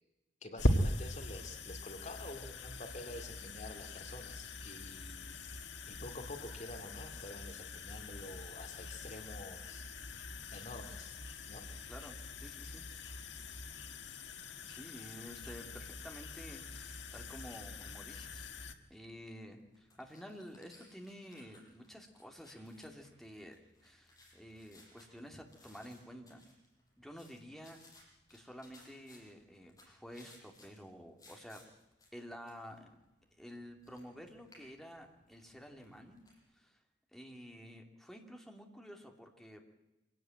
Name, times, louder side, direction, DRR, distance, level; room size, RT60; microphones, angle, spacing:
voice 1, 0.4-5.4 5.9-9.9 10.5-11.2 11.5-11.6, left 1 dB, 40° left, 5 dB, 2.4 m, -48 dB
sound 1, 0.6-18.7, left 1 dB, 85° left, 1.8 m, -41 dB
voice 2, 11.9-12.8 14.7-18.5 18.9-23.6 23.8-26.5 27.0-31.6 32.1-32.9 33.3-36.2 36.5-36.8 37.1-39.6, equal, ahead, 2 dB, 2.8 m, -51 dB
sound 2, 19.3-36.4, left 2 dB, 20° left, 7.1 m, -63 dB
25.0 x 17.0 x 9.1 m, 1.0 s
head